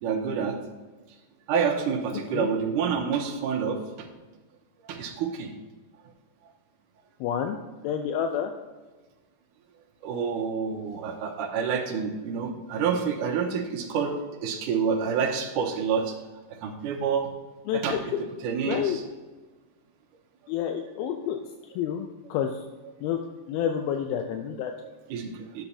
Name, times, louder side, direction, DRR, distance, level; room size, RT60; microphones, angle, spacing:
voice 1, 0.0-0.6 1.5-3.8 4.9-5.5 10.0-14.2 14.4-16.1 16.6-17.3 17.7-18.0 18.4-19.0 24.8-25.6, right 6 dB, 75° right, 0 dB, 2.1 m, -28 dB
voice 2, 7.2-7.6 7.8-8.5 17.7-18.2 18.7-19.0 20.5-21.4 21.8-22.5 23.0-23.2 23.5-24.7, left 9 dB, 85° left, 5 dB, 2.4 m, -28 dB
11.0 x 7.3 x 2.7 m, 1.3 s
omnidirectional pair, 4.2 m